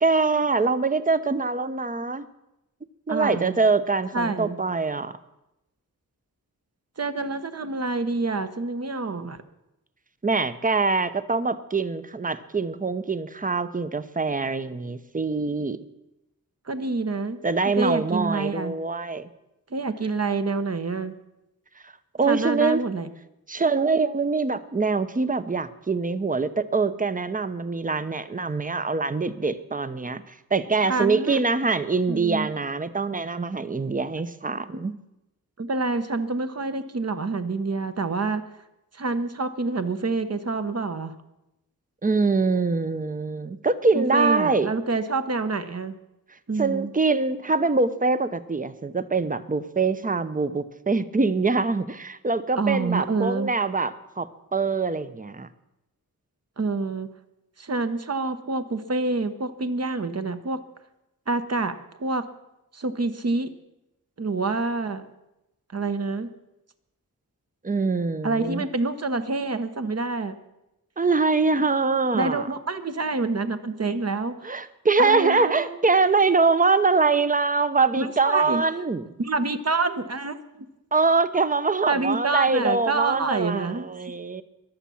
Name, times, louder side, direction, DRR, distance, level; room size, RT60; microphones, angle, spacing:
voice 1, 0.0-2.3 3.1-5.2 10.2-15.8 17.4-19.3 21.8-21.9 22.2-22.8 23.5-35.0 42.0-44.7 46.6-55.5 67.6-68.6 71.0-72.5 74.4-79.1 80.9-84.4, right 4 dB, 25° right, 13 dB, 0.7 m, -24 dB
voice 2, 3.1-3.6 4.1-4.6 7.0-9.4 16.7-18.7 19.7-21.2 22.2-23.1 30.8-31.4 32.1-32.5 35.6-38.4 38.9-41.1 43.9-46.0 46.5-46.9 52.6-53.5 56.6-57.1 57.6-60.6 61.3-61.7 62.0-62.2 62.7-63.5 64.2-65.1 65.7-66.3 68.2-70.3 72.1-74.4 75.0-75.8 78.0-78.6 79.2-80.7 81.9-83.9, right 3 dB, 45° right, 9 dB, 1.1 m, -27 dB
22.0 x 7.4 x 7.1 m, 0.92 s
wide cardioid pair, 125°, 35 cm